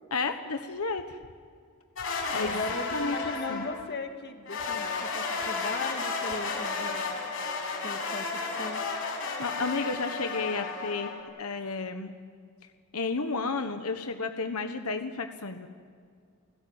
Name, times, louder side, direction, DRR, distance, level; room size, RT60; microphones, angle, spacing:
voice 1, 0.1-1.2 2.3-2.6 2.9-3.7 9.4-12.1 12.9-15.7, left 4 dB, 90° left, 7 dB, 1.4 m, -32 dB
sound 1, 2.0-3.9 4.5-11.2, left 4 dB, 65° left, 6.1 m, -33 dB
voice 2, 2.3-7.0 7.8-8.8, left 3 dB, 50° left, 5 dB, 2.1 m, -38 dB
30.0 x 16.5 x 8.9 m, 2.1 s
head